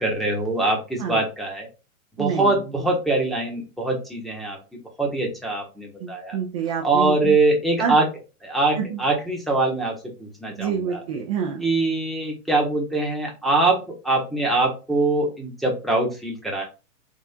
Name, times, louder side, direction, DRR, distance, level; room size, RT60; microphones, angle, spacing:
voice 1, 0.0-1.7 2.2-4.6 5.0-6.4 6.8-8.1 8.4-11.0 11.6-16.6, right 2 dB, ahead, -2 dB, 0.8 m, -23 dB
voice 2, 2.2-2.6 6.0-7.4 7.8-8.0 8.8-9.0 10.5-11.6, right 7 dB, 25° right, 2 dB, 0.4 m, -27 dB
3.6 x 2.3 x 4.1 m, 0.31 s
hypercardioid pair, 135°, 44 cm